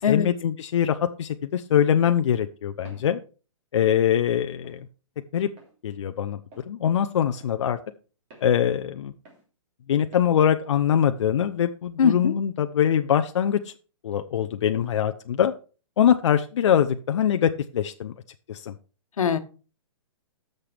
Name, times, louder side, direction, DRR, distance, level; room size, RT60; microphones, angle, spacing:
voice 1, 0.1-3.2 3.7-4.9 5.3-5.5 5.8-6.4 6.7-7.8 8.4-9.1 9.9-13.7 14.0-15.5 16.0-18.1 18.5-18.7, left 9 dB, 60° left, 7 dB, 0.6 m, -23 dB
Walk footsteps, 2.9-3.1 3.7-3.9 4.6-4.8 5.6-5.7 6.5-6.7 7.4-7.6 8.3-8.5 9.3-9.5 10.1-10.3, right 2 dB, 25° right, 3.3 m, -50 dB
voice 2, 12.0-12.3 19.2-19.4, left 7 dB, 90° left, 9 dB, 1.3 m, -21 dB
13.0 x 6.7 x 3.4 m, 0.36 s
hypercardioid pair, 170°, 17 cm